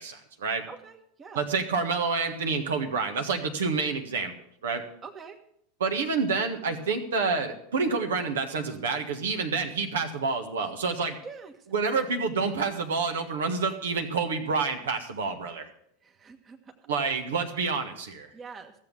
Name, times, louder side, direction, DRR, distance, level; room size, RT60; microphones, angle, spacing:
voice 1, 0.0-0.6 1.3-4.3 4.6-4.8 5.8-11.2 11.7-15.7 16.9-18.3, right 4 dB, 65° right, 5 dB, 1.5 m, -28 dB
voice 2, 0.7-1.4 5.0-5.4 11.2-11.5 16.0-16.6 18.3-18.7, right 5 dB, 25° right, 5 dB, 1.5 m, -44 dB
15.0 x 7.7 x 7.0 m, 0.71 s
figure-of-eight pair, 85°, 0 cm